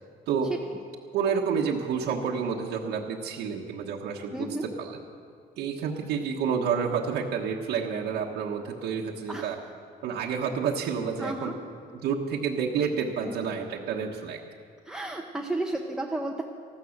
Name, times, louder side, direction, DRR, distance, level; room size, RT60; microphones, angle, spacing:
voice 1, 1.1-4.5 4.8-5.0 5.6-9.6 10.0-11.5 12.0-14.4, right 6 dB, 80° right, -2 dB, 1.2 m, -29 dB
voice 2, 4.3-4.6 9.3-9.6 11.2-11.5 13.2-13.3 14.8-16.4, right 2 dB, 5° right, 1 dB, 0.9 m, -32 dB
14.0 x 13.0 x 6.5 m, 2.3 s
cardioid pair, 110°, 17 cm